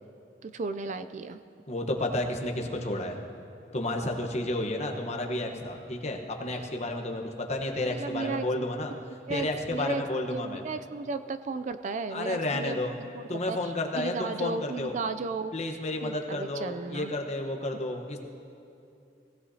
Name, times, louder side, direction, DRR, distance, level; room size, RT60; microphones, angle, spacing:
voice 1, 0.4-1.4 7.9-8.5 9.3-10.0 10.3-12.8 13.1-15.5 16.0-17.1, right 4 dB, 45° right, 11 dB, 0.4 m, -34 dB
voice 2, 1.7-3.2 3.7-8.9 9.3-10.6 12.1-13.0 13.3-15.0 15.5-18.2, left 1 dB, 40° left, 2 dB, 1.1 m, -31 dB
18.5 x 16.0 x 2.8 m, 2.6 s
head